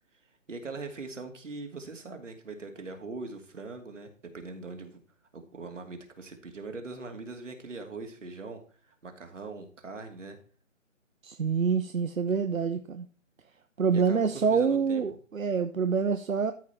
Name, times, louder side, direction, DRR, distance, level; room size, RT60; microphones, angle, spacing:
voice 1, 0.5-5.0 5.3-8.6 8.9-10.4 13.9-15.0, right 3 dB, 65° right, 2.7 m, -41 dB
voice 2, 11.2-13.0 13.8-16.5, right 6 dB, 90° right, 1.1 m, -26 dB
13.5 x 5.4 x 4.3 m
hypercardioid pair, 165°, 39 cm